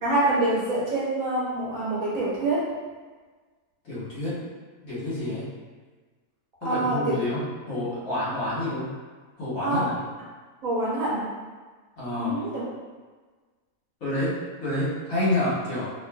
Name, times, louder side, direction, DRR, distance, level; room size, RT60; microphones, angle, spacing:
voice 1, 0.0-2.6 6.6-7.2 9.6-9.8 10.6-11.2 12.2-12.6, right 2 dB, 65° right, -7 dB, 1.0 m, -25 dB
voice 2, 3.8-4.5 4.8-5.5 6.6-8.9 9.4-9.9 12.0-12.3 14.0-15.9, left 1 dB, 65° left, -10 dB, 1.4 m, -28 dB
2.8 x 2.4 x 2.2 m, 1.4 s
omnidirectional pair, 1.6 m